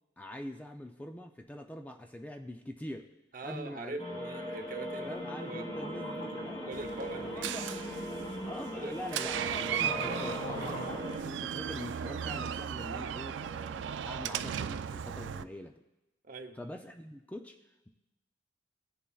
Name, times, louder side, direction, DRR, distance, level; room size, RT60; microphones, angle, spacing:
voice 1, 0.2-3.1 3.4-4.0 5.0-6.7 7.2-7.7 8.4-15.7 16.6-17.6, left 1 dB, 10° left, 4 dB, 0.4 m, -44 dB
voice 2, 3.3-5.7 6.7-7.5 8.1-8.4 8.8-9.0 16.2-16.6, right 2 dB, 45° right, 5 dB, 0.7 m, -43 dB
sound 1, 4.0-11.2, equal, 30° left, 1.9 m, -40 dB
sound 2, 5.1-5.2 5.4-8.6 9.4-9.5 9.8-10.9, equal, 50° left, 1.8 m, -42 dB
Door, 6.7-15.4, right 8 dB, 70° right, 0.3 m, -37 dB
19.5 x 6.9 x 2.3 m, 0.98 s
head